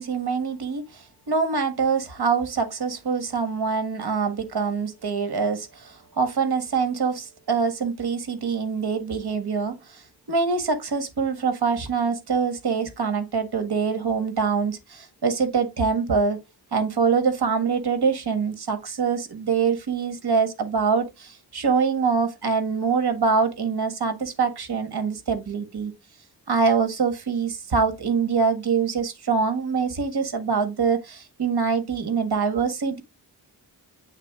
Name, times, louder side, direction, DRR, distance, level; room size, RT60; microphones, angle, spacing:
voice 1, 0.0-10.0 10.3-16.4 16.7-25.9 26.5-33.0, right 5 dB, 70° right, 1.5 m, -24 dB
8.1 x 3.8 x 3.5 m
wide cardioid pair, 80°, 40 cm